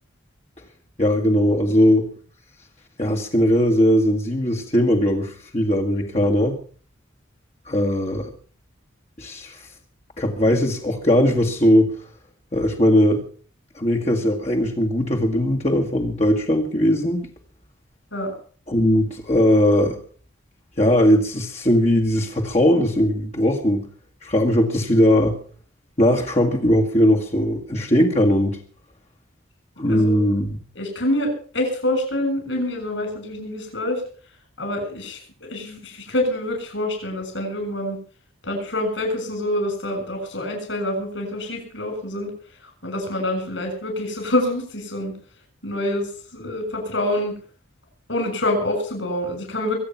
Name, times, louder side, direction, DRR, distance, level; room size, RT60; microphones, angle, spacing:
voice 1, 1.0-2.1 3.0-6.6 7.7-8.3 9.2-9.7 10.2-11.9 12.5-13.2 13.8-17.2 18.7-20.0 20.8-23.8 24.2-25.4 26.0-28.6 29.8-30.6, equal, 35° left, 0 dB, 1.8 m, -19 dB
voice 2, 29.9-30.2 30.7-34.0 34.6-38.0 38.4-42.3 42.8-45.1 45.6-47.3 48.1-49.8, left 1 dB, 65° left, 4 dB, 7.4 m, -26 dB
24.0 x 8.8 x 5.8 m, 0.43 s
head